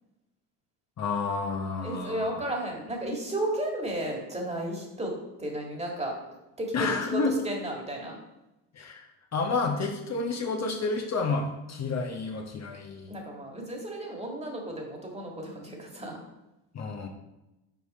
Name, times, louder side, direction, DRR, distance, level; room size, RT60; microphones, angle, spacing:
voice 1, 1.0-2.4 6.7-7.4 8.7-9.0 9.3-13.1 16.7-17.1, left 4 dB, 40° left, 2 dB, 1.0 m, -30 dB
voice 2, 1.8-6.2 6.6-8.2 13.1-16.2, right 1 dB, 15° right, 0 dB, 1.9 m, -33 dB
5.4 x 4.6 x 4.2 m, 0.96 s
supercardioid pair, 85°, 42 cm